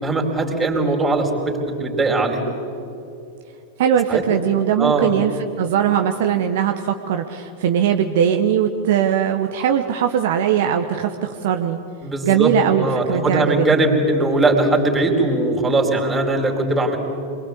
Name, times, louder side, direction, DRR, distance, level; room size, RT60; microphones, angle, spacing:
voice 1, 0.0-2.4 4.1-4.2 4.8-5.1 12.0-17.0, right 2 dB, 10° right, 1 dB, 4.5 m, -20 dB
voice 2, 3.8-11.8 12.2-13.8, right 9 dB, 55° right, 5 dB, 1.2 m, -20 dB
27.0 x 22.5 x 8.5 m, 2.6 s
figure-of-eight pair, 90°, 0 cm